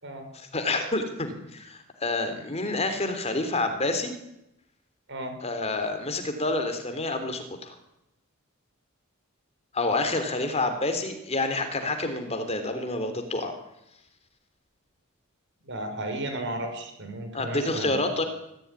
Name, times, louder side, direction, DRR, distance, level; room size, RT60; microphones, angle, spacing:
voice 1, 0.3-4.1 5.4-7.8 9.7-13.5 17.3-18.2, left 2 dB, 30° left, 7 dB, 3.4 m, -28 dB
voice 2, 15.6-18.0, right 1 dB, 60° right, 6 dB, 5.9 m, -34 dB
24.0 x 15.0 x 9.9 m, 0.85 s
head